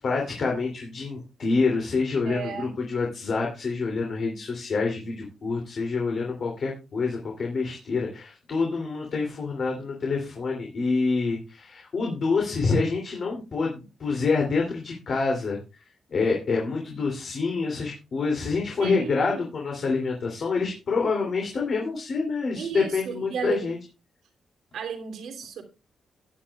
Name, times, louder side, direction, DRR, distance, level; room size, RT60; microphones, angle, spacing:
voice 1, 0.0-23.8, left 4 dB, 50° left, 2.9 m, -27 dB
voice 2, 2.2-2.8 18.8-19.5 22.5-23.8 24.7-25.6, right 6 dB, 85° right, 2.8 m, -34 dB
17.0 x 10.0 x 2.4 m
cardioid pair, 130°, 0 cm